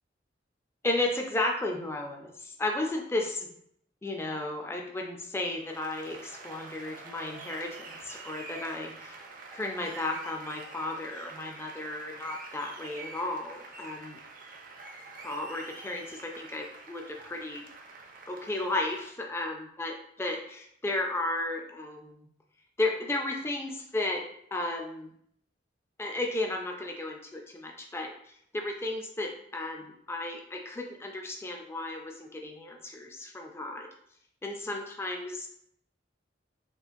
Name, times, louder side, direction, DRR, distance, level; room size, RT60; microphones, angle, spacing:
voice 1, 0.8-3.5 4.0-9.1 9.5-14.2 15.2-17.6 18.3-19.9 20.2-22.3 22.8-24.2 24.5-25.1 26.0-28.1 28.5-33.9 34.4-35.5, left 2 dB, 15° left, 1 dB, 0.3 m, -34 dB
Applause, 5.5-19.1, right 3 dB, 45° right, 0.5 m, -46 dB
3.6 x 2.5 x 2.5 m, 0.70 s
head